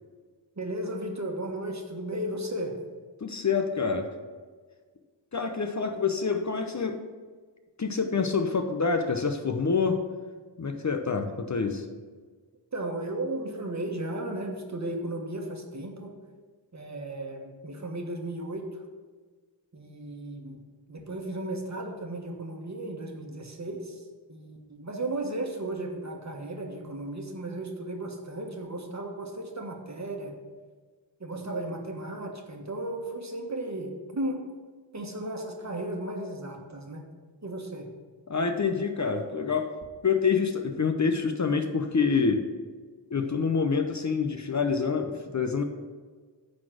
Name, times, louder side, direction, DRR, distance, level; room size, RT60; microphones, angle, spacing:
voice 1, 0.6-2.8 12.7-16.1 16.7-18.8 19.7-20.6 20.9-30.3 31.2-34.4 34.9-37.0 37.4-37.9, right 1 dB, 35° right, 2 dB, 1.4 m, -35 dB
voice 2, 3.2-4.1 5.3-7.0 7.8-10.0 10.6-11.8 38.3-39.7 40.0-42.4 43.1-45.6, left 5 dB, 40° left, 6 dB, 0.7 m, -27 dB
9.7 x 4.2 x 7.5 m, 1.5 s
wide cardioid pair, 95°, 45 cm